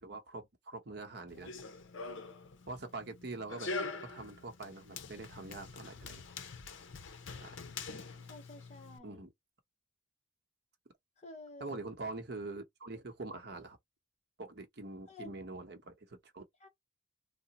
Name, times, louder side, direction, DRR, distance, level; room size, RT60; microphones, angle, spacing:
voice 1, 0.0-1.5 2.7-3.7 4.0-6.2 7.3-7.6 9.0-9.3 11.6-13.8 14.4-16.4, right 3 dB, 55° right, 0.8 m, -44 dB
Run, 1.3-9.0, left 3 dB, 70° left, 0.7 m, -44 dB
voice 2, 8.2-9.2 11.2-11.8 15.1-15.3 16.6-16.7, left 2 dB, 35° left, 0.9 m, -51 dB
2.9 x 2.1 x 4.0 m
head